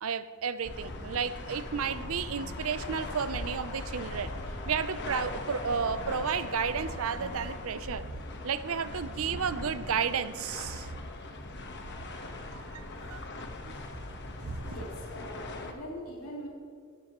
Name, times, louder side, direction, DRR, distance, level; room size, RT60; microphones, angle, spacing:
voice 1, 0.0-4.3 4.7-8.0 8.4-10.9 12.5-13.2 13.6-13.7 14.4-14.8, right 6 dB, 65° right, 13 dB, 0.6 m, -32 dB
sound 1, 0.6-15.7, left 2 dB, 55° left, 1.3 m, -40 dB
sound 2, 1.7-7.6, left 4 dB, 30° left, 0.9 m, -46 dB
voice 2, 14.6-16.5, equal, 85° left, -3 dB, 3.0 m, -42 dB
16.5 x 14.0 x 3.0 m, 2.1 s
head